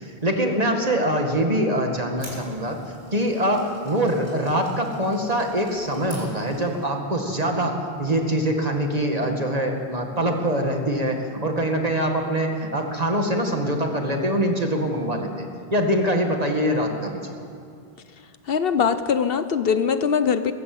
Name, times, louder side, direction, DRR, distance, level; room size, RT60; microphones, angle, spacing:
voice 1, 0.0-2.8 3.1-17.3, right 1 dB, 40° right, 3 dB, 2.1 m, -24 dB
sound 1, 2.1-7.0, equal, 60° right, 5.9 m, -46 dB
voice 2, 18.5-20.5, left 6 dB, 70° left, 12 dB, 1.0 m, -21 dB
21.5 x 15.0 x 7.9 m, 2.3 s
omnidirectional pair, 1.0 m